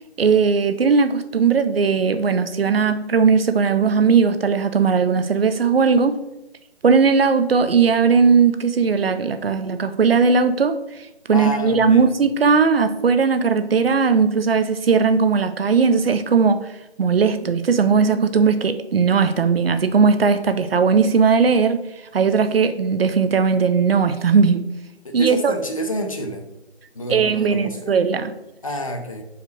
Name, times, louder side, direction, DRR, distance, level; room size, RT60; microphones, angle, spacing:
voice 1, 0.2-6.2 6.8-10.8 11.3-16.7 17.0-21.8 22.1-24.6 25.1-25.5 27.1-28.3, right 5 dB, 60° right, 11 dB, 0.6 m, -18 dB
voice 2, 11.3-12.1 25.0-26.4 26.9-28.0 28.6-29.2, equal, 30° left, 4 dB, 0.6 m, -28 dB
6.3 x 4.8 x 3.2 m, 0.91 s
figure-of-eight pair, 160°, 32 cm